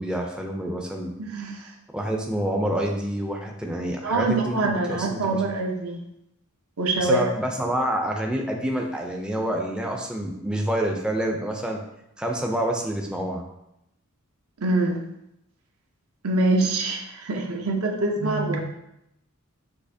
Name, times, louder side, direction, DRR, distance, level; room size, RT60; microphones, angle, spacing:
voice 1, 0.0-1.1 1.9-5.5 7.0-11.8 12.2-13.4, right 1 dB, 5° right, 1 dB, 0.4 m, -27 dB
voice 2, 1.3-1.7 4.0-6.0 6.8-7.2 14.6-15.0 16.2-18.6, right 2 dB, 75° right, 1 dB, 0.7 m, -24 dB
6.4 x 2.7 x 2.7 m, 0.83 s
head